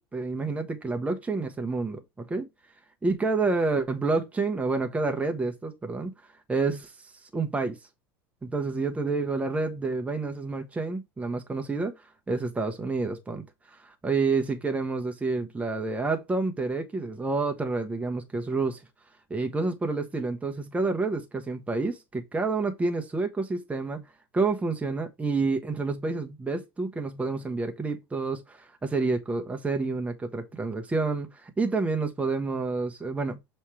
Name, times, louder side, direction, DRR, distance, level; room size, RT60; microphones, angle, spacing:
voice 1, 0.0-2.5 3.0-6.1 6.5-6.9 7.3-7.8 8.4-11.9 12.3-13.4 13.7-18.8 19.3-24.0 24.3-33.4, right 3 dB, 10° right, 1.1 m, -29 dB
7.0 x 3.3 x 4.7 m
figure-of-eight pair, 80°, 13 cm